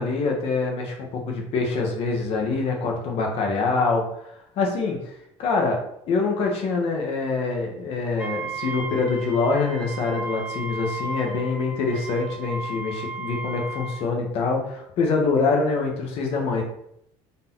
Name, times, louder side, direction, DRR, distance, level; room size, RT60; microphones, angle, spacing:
voice 1, 0.0-5.8 6.1-16.6, left 4 dB, 50° left, 1 dB, 1.1 m, -25 dB
Wind instrument woodwind instrument, 8.2-14.1, right 2 dB, 5° right, 0.5 m, -35 dB
4.0 x 2.7 x 3.7 m, 0.76 s
cardioid pair, 155°, 13 cm